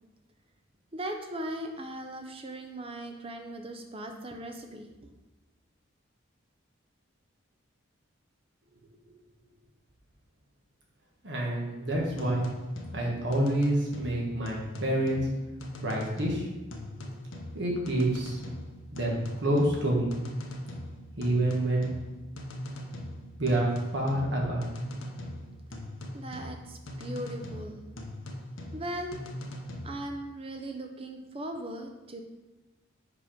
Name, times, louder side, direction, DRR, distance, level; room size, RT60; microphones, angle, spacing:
voice 1, 0.9-5.1 26.1-27.9 28.7-29.2 29.8-32.2, right 1 dB, 30° right, 4 dB, 0.6 m, -38 dB
voice 2, 11.2-12.5 12.9-15.3 15.8-16.5 17.5-18.4 18.9-20.2 21.2-21.9 23.4-24.7, right 1 dB, 55° right, -2 dB, 1.5 m, -28 dB
sound 1, 11.9-30.0, left 1 dB, 70° left, 0.8 m, -41 dB
5.0 x 4.8 x 5.0 m, 1.1 s
head